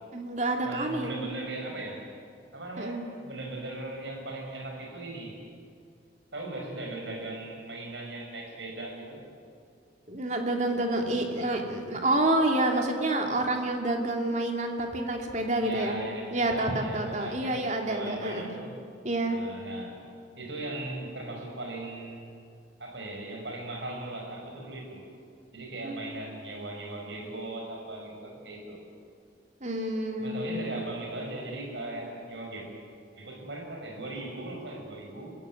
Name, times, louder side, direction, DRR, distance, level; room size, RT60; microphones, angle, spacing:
voice 1, 0.1-1.2 2.8-3.0 10.1-16.0 16.3-18.5 19.0-19.4 25.8-26.2 29.6-30.8, right 1 dB, 40° right, 2 dB, 2.7 m, -28 dB
voice 2, 0.6-2.0 2.5-5.4 6.3-9.2 15.6-18.8 19.3-20.0 20.4-22.3 22.8-25.0 25.5-28.8 30.2-32.7 33.2-35.3, right 2 dB, 75° right, 1 dB, 5.8 m, -38 dB
26.0 x 16.0 x 9.8 m, 2.3 s
head